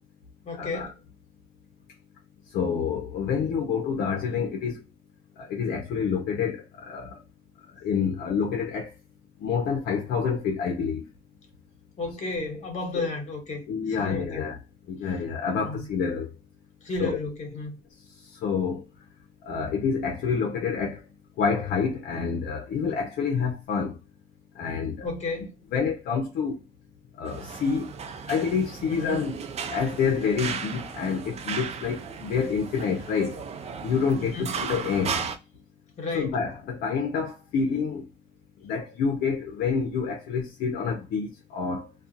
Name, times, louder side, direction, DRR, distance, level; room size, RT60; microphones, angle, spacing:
voice 1, 0.4-1.0 12.0-14.5 15.6-15.9 16.8-17.8 25.0-25.6 28.9-29.2 34.2-34.6 36.0-36.4, left 3 dB, 45° left, 1.2 m, -33 dB
voice 2, 2.5-4.8 5.4-7.2 7.8-8.9 9.4-11.0 12.9-13.0 13.7-14.6 14.9-16.3 17.0-17.2 18.2-18.9 19.4-21.0 21.4-24.0 24.5-25.1 25.7-26.6 27.2-27.9 28.3-29.3 29.7-33.4 33.8-35.2 36.1-38.1 38.6-41.9, left 6 dB, 70° left, 0.7 m, -28 dB
sound 1, 27.3-35.4, right 6 dB, 40° right, 0.5 m, -36 dB
2.3 x 2.3 x 2.7 m
cardioid pair, 110°, 17 cm